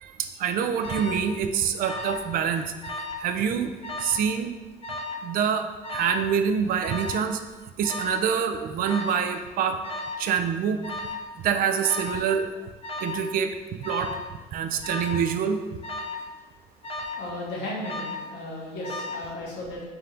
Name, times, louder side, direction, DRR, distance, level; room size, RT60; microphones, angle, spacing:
voice 1, 0.0-2.7 3.2-3.7 4.0-4.5 5.2-7.4 7.8-9.8 10.2-10.8 11.4-12.5 13.0-13.6 13.8-14.1 14.5-15.6, right 7 dB, 60° right, 7 dB, 0.4 m, -26 dB
Alarm, 0.8-1.3 1.8-2.3 2.6-3.3 3.8-4.2 4.8-5.3 5.8-6.3 6.8-7.3 7.8-8.3 8.8-9.3 9.8-10.3 10.8-11.3 11.8-12.3 12.8-13.3 13.8-14.3 14.8-15.3 15.8-16.3 16.8-17.3 17.8-18.3 18.8-19.3, left 2 dB, 35° left, 0.5 m, -34 dB
voice 2, 17.2-19.9, left 1 dB, 85° left, -3 dB, 1.2 m, -35 dB
3.5 x 2.5 x 4.3 m, 1.3 s
cardioid pair, 110°, 17 cm